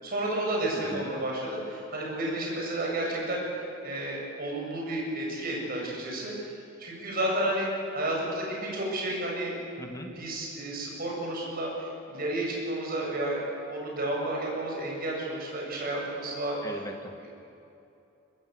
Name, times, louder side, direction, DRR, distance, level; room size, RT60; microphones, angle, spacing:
voice 1, 0.0-3.4 3.8-6.3 6.8-9.5 10.1-16.6 17.2-17.3, right 1 dB, 45° right, -2 dB, 7.9 m, -31 dB
voice 2, 9.8-10.1 16.6-17.1, left 1 dB, 15° left, 3 dB, 2.3 m, -39 dB
24.5 x 20.0 x 8.2 m, 2.8 s
head